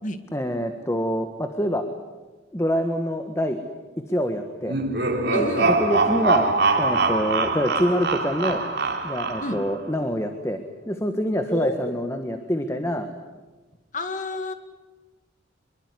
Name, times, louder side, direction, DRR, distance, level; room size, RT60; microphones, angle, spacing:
voice 1, 0.3-1.8 2.5-3.6 4.1-4.8 5.3-6.5 6.8-8.6 9.0-10.6 10.8-13.1, equal, 15° left, 6 dB, 1.4 m, -25 dB
sound 1, 4.6-9.7, right 3 dB, 60° right, 3.4 m, -23 dB
voice 2, 5.3-5.7 9.4-9.6 11.5-11.9 13.9-14.5, left 2 dB, 40° left, 7 dB, 2.0 m, -29 dB
24.5 x 23.0 x 9.8 m, 1.2 s
head